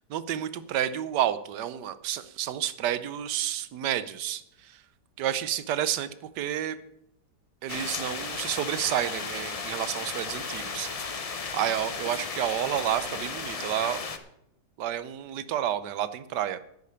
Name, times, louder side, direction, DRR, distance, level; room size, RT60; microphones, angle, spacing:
voice 1, 0.1-4.8 5.2-6.8 7.6-10.9 11.5-14.0 14.8-16.6, right 11 dB, 75° right, 14 dB, 1.3 m, -30 dB
sound 1, 7.7-14.2, left 4 dB, 55° left, 0.4 m, -35 dB
10.0 x 6.7 x 8.1 m, 0.76 s
omnidirectional pair, 1.9 m